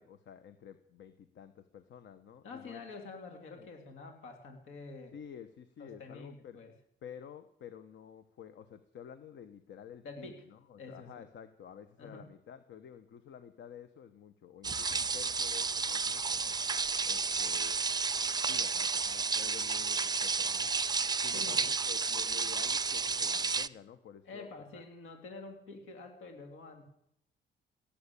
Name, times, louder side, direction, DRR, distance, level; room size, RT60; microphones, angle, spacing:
voice 1, 0.0-3.0 3.6-3.7 5.1-6.6 7.0-16.5 17.0-17.8 18.4-20.7 21.2-24.8, left 8 dB, 70° left, 10 dB, 1.1 m, -51 dB
voice 2, 2.4-5.1 5.8-6.7 10.0-10.4 10.8-11.2 12.0-12.2 21.3-21.6 24.2-26.8, left 3 dB, 85° left, 4 dB, 3.1 m, -47 dB
sound 1, 14.6-23.7, right 4 dB, 20° right, 0.5 m, -32 dB
17.5 x 8.6 x 8.5 m, 0.72 s
cardioid pair, 90°, 20 cm